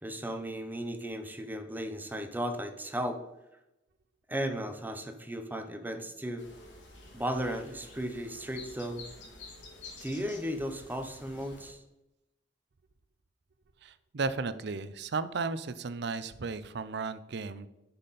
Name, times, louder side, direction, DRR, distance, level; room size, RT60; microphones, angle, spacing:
voice 1, 0.0-3.2 4.3-6.5 7.1-9.0 10.0-11.8, equal, 10° right, 6 dB, 0.8 m, -35 dB
sound 1, 6.4-11.7, left 3 dB, 85° left, 2.2 m, -50 dB
voice 2, 13.8-17.7, right 4 dB, 65° right, 14 dB, 0.6 m, -34 dB
10.0 x 5.8 x 4.1 m, 0.93 s
head